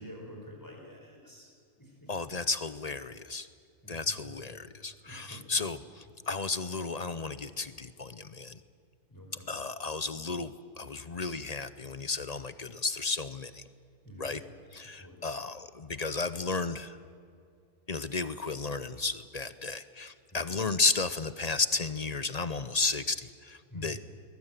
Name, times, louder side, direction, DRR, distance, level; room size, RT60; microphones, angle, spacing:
voice 1, 0.0-1.5 1.8-2.1 3.8-4.2 5.0-5.4 9.1-9.6 14.0-14.4 14.9-15.3 20.3-20.6 23.7-24.0, equal, 15° left, 1 dB, 4.6 m, -48 dB
voice 2, 2.1-3.5 3.9-8.6 9.5-10.5 10.8-13.6 14.2-14.4 14.7-17.0 17.9-24.1, left 3 dB, 40° left, 14 dB, 0.6 m, -33 dB
22.5 x 20.5 x 9.1 m, 2.3 s
omnidirectional pair, 1.4 m